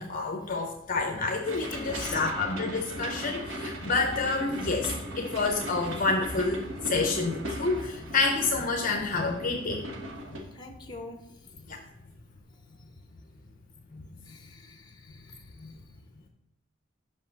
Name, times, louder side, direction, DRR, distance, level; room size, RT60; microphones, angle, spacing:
voice 1, 0.0-9.8 11.7-11.8 13.9-14.0 15.6-15.7, left 3 dB, 45° left, 3 dB, 0.7 m, -28 dB
sound 1, 1.4-10.4, equal, 90° right, 1.4 m, -38 dB
voice 2, 1.8-2.3 10.5-11.2 14.3-15.4, left 3 dB, 25° left, 4 dB, 1.1 m, -43 dB
5.9 x 5.5 x 6.5 m, 0.79 s
head